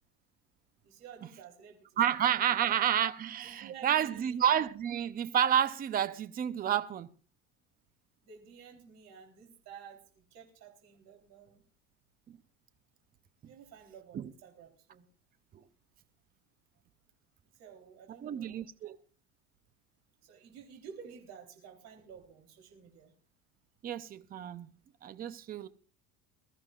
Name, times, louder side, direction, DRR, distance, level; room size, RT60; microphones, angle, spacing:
voice 1, 0.8-2.7 3.4-4.4 8.2-11.6 13.5-15.0 17.5-18.9 20.2-23.1, right 7 dB, 60° right, 3.6 m, -52 dB
voice 2, 2.0-7.1 14.1-14.3 18.2-19.0 23.8-24.7 25.0-25.7, right 10 dB, 30° right, 0.7 m, -30 dB
22.0 x 14.0 x 2.4 m
cardioid pair, 150°, 31 cm